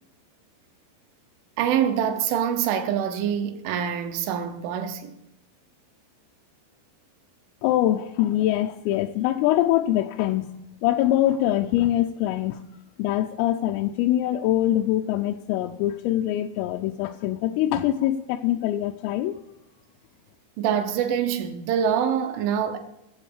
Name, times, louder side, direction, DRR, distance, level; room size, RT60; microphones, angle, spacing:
voice 1, 1.6-5.1 20.6-22.8, right 8 dB, 75° right, 3.3 m, -25 dB
voice 2, 7.6-10.5 10.8-12.6 13.0-19.4, left 13 dB, 85° left, 3.2 m, -23 dB
18.0 x 7.6 x 7.2 m
omnidirectional pair, 5.9 m